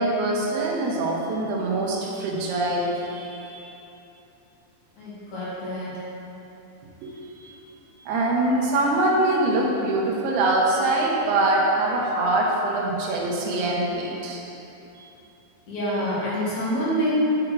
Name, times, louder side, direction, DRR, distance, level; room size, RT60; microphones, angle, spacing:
voice 1, 0.0-3.6 7.0-7.2 8.1-14.4 15.0-15.1, right 2 dB, 85° right, -3 dB, 3.0 m, -23 dB
voice 2, 5.0-6.1 15.7-17.1, equal, 55° left, -9 dB, 2.8 m, -27 dB
9.9 x 3.7 x 4.6 m, 3.0 s
omnidirectional pair, 4.4 m